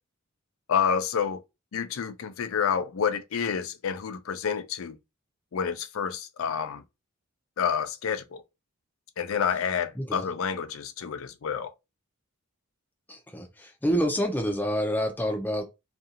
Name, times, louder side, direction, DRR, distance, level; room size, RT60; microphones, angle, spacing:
voice 1, 0.7-1.4 1.7-5.0 5.5-6.8 7.6-8.4 9.2-11.7, left 7 dB, 70° left, 0.4 m, -29 dB
voice 2, 10.0-10.3 13.1-15.6, equal, 10° left, 0.5 m, -28 dB
2.5 x 2.4 x 2.8 m
head